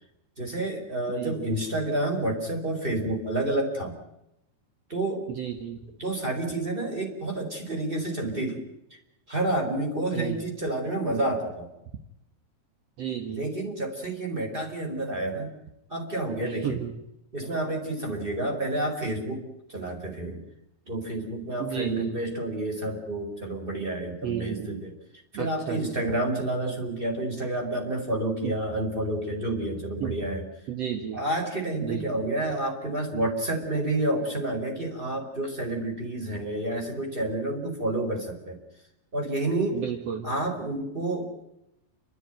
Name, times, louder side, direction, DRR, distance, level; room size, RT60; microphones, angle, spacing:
voice 1, 0.4-4.0 4.9-5.2 6.0-8.6 9.3-11.7 13.3-15.5 15.9-16.8 17.3-20.4 20.9-24.9 25.3-30.5 31.1-38.6 39.1-39.8 40.2-41.3, right 1 dB, 10° right, 2 dB, 4.5 m, -29 dB
voice 2, 1.1-1.5 5.3-5.8 10.1-10.4 13.0-13.5 16.4-16.9 21.6-22.2 24.2-24.8 25.3-26.1 28.4-28.5 30.0-30.2 30.7-31.2 31.8-32.2 39.7-40.3, right 8 dB, 60° right, 5 dB, 1.7 m, -33 dB
29.5 x 13.5 x 9.2 m, 0.84 s
omnidirectional pair, 4.9 m